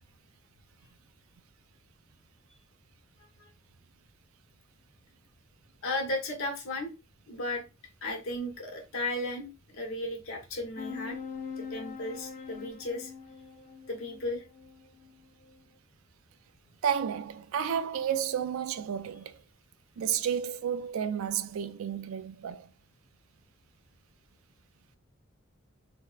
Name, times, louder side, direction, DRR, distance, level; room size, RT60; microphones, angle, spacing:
voice 1, 5.8-6.9 7.3-7.6 8.0-11.2 11.6-13.1 13.9-14.4, left 2 dB, 80° left, 1.0 m, -35 dB
sound 1, 10.8-15.6, left 6 dB, 40° left, 0.3 m, -43 dB
voice 2, 16.8-19.3 20.0-22.7, right 8 dB, 80° right, 0.3 m, -31 dB
3.5 x 2.1 x 2.3 m
head